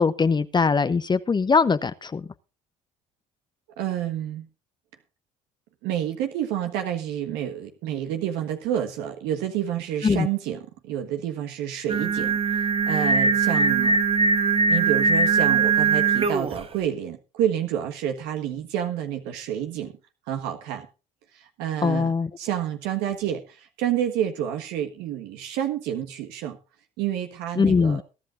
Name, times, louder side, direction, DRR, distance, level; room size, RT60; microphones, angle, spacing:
voice 1, 0.0-2.3 10.0-10.3 21.8-22.3 27.6-28.0, left 5 dB, 25° left, 0.8 m, -21 dB
voice 2, 3.8-4.5 5.8-14.0 14.7-19.9 20.3-20.9 21.3-22.1 22.4-26.6 27.0-28.0, right 10 dB, 75° right, 1.5 m, -29 dB
Singing, 11.9-16.6, right 4 dB, 35° right, 1.5 m, -21 dB
22.5 x 10.5 x 2.5 m
supercardioid pair, 75°, 17 cm